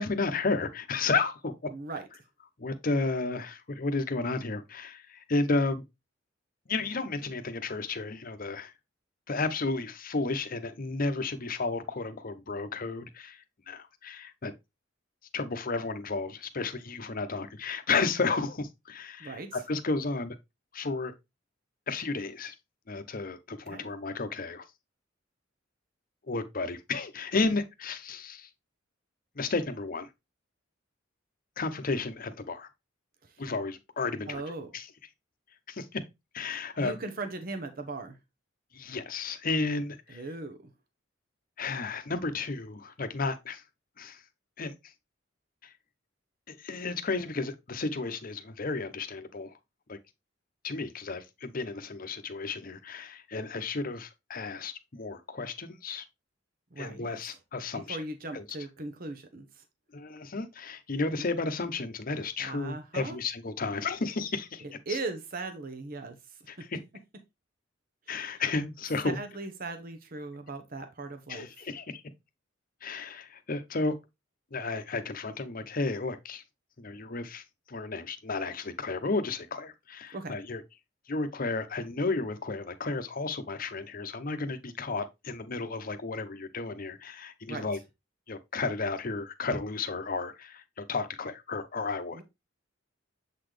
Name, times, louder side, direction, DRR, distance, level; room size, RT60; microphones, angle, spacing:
voice 1, 0.0-1.7 2.6-5.8 6.7-8.7 9.3-14.5 15.3-20.4 20.7-21.1 21.9-22.5 22.9-24.6 26.3-28.5 29.4-30.1 31.6-32.7 33.4-34.4 34.7-34.9 35.7-36.0 36.3-36.9 38.7-40.2 41.6-43.6 44.0-44.2 44.6-44.7 45.6-45.7 46.6-49.5 49.9-50.0 50.6-56.1 56.8-58.0 58.3-58.4 59.9-65.0 66.5-66.8 68.1-69.2 71.3-72.0 72.8-73.9 74.5-76.4 76.8-80.6 81.1-87.8 88.3-92.2, left 3 dB, 45° left, 0.8 m, -33 dB
voice 2, 1.7-2.0 19.2-19.6 23.7-23.9 33.2-33.3 34.3-34.7 36.8-38.2 40.1-40.6 56.7-57.4 57.9-59.6 60.9-61.3 62.4-63.2 64.6-66.2 66.6-66.7 68.1-68.4 69.1-71.5 80.1-80.3 87.5-87.7 92.1-92.2, right 3 dB, 50° right, 0.9 m, -39 dB
7.4 x 4.0 x 3.2 m
head